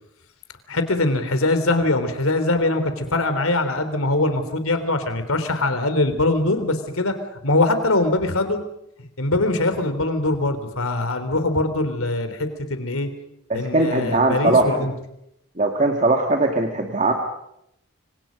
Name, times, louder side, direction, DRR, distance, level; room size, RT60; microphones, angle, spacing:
voice 1, 0.7-7.2 7.4-8.6 9.2-12.4 12.7-13.1 13.5-14.9, left 2 dB, 80° left, 9 dB, 3.5 m, -22 dB
voice 2, 13.5-14.7 15.6-17.1, right 2 dB, 35° right, 2 dB, 2.2 m, -20 dB
29.0 x 25.5 x 5.3 m, 0.78 s
head